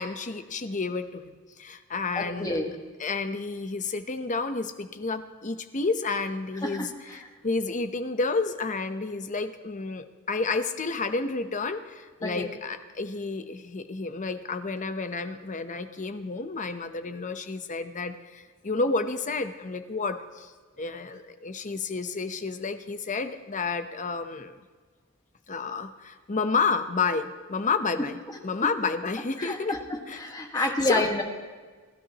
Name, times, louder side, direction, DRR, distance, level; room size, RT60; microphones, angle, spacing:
voice 1, 0.0-2.6 3.0-6.9 7.4-20.5 20.8-24.6 25.5-29.8 30.1-30.2 30.5-31.1, left 4 dB, 35° left, 9 dB, 0.8 m, -30 dB
voice 2, 2.1-2.7 6.6-7.2 12.2-12.5 28.3-28.4 29.4-31.2, left 1 dB, 20° left, 2 dB, 1.6 m, -29 dB
29.5 x 12.5 x 3.0 m, 1.4 s
head